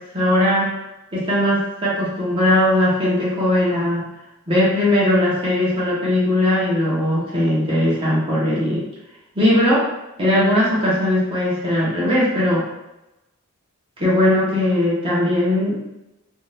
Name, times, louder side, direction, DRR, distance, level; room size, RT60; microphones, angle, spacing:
voice 1, 0.1-0.7 1.1-4.0 4.5-8.8 9.3-9.8 10.2-12.7 14.0-15.8, left 1 dB, 25° right, -7 dB, 0.8 m, -19 dB
2.7 x 2.3 x 3.2 m, 0.94 s
head